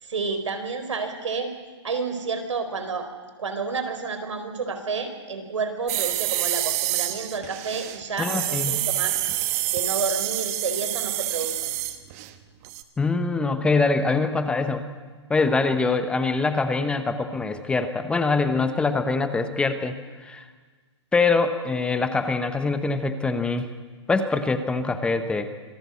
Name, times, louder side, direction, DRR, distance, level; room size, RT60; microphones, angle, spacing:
voice 1, 0.0-1.5 1.8-3.1 3.4-9.1 9.7-11.7, right 4 dB, 90° right, 7 dB, 4.3 m, -30 dB
sound 1, 5.9-12.3 12.6-12.8, right 15 dB, 35° right, 1.2 m, -27 dB
voice 2, 8.2-8.7 13.0-14.8 15.3-20.4 21.1-23.7 24.1-25.5, left 3 dB, 5° left, 9 dB, 0.9 m, -24 dB
25.5 x 16.0 x 8.3 m, 1.4 s
hypercardioid pair, 155°, 15 cm